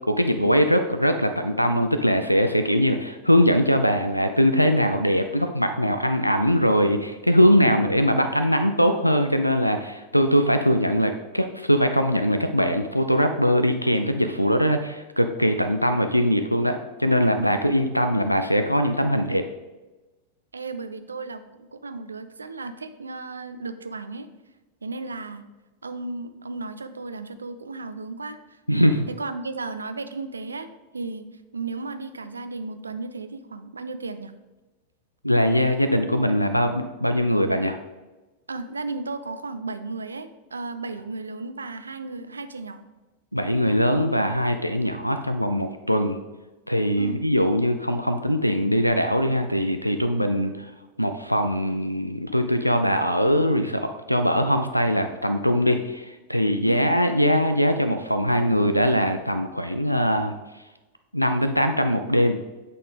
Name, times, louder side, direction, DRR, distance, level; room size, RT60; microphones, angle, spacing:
voice 1, 0.1-19.4 28.7-29.1 35.2-37.8 43.3-46.2 46.7-50.7 51.0-60.3 61.1-62.4, equal, 90° left, 8 dB, 0.3 m, -21 dB
voice 2, 7.7-8.5 20.5-21.4 21.7-24.3 24.8-25.4 25.8-28.6 29.1-30.7 30.9-31.2 31.5-34.3 38.5-42.8 47.0-47.3 56.6-56.9, right 3 dB, 75° right, 10 dB, 0.4 m, -34 dB
8.3 x 4.1 x 3.4 m, 1.1 s
figure-of-eight pair, 90°, 0 cm